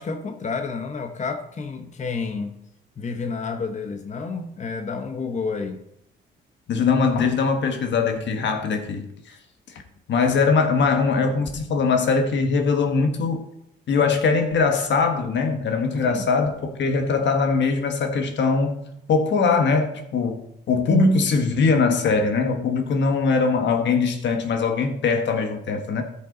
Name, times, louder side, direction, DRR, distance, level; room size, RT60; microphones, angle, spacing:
voice 1, 0.0-2.5 3.0-5.8 16.0-16.3, left 4 dB, 35° left, 1.0 m, -30 dB
voice 2, 6.7-9.4 10.1-13.4 13.9-20.4 20.7-26.0, left 4 dB, 65° left, 1.5 m, -21 dB
13.5 x 5.7 x 4.0 m
cardioid pair, 90°, 20 cm